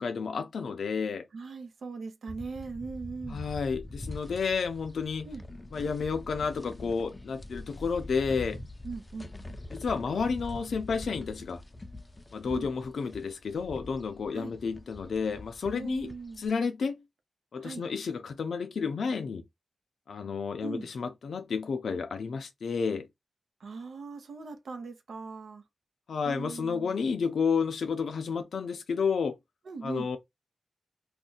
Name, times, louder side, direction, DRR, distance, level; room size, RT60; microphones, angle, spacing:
voice 1, 0.0-1.3 3.3-5.3 5.7-8.6 9.7-11.6 12.3-16.1 16.4-17.0 17.5-19.4 20.1-23.1 26.1-29.4 29.8-30.2, left 5 dB, 85° left, 0.4 m, -31 dB
voice 2, 1.3-3.4 5.2-5.4 8.8-9.3 12.5-12.7 14.3-14.5 15.7-16.4 17.6-17.8 20.6-20.9 23.6-25.6 26.2-27.0 29.7-30.1, right 4 dB, 80° right, 0.6 m, -40 dB
sound 1, 2.3-16.5, left 1 dB, 20° left, 0.4 m, -44 dB
2.5 x 2.2 x 3.8 m
wide cardioid pair, 110°, 0 cm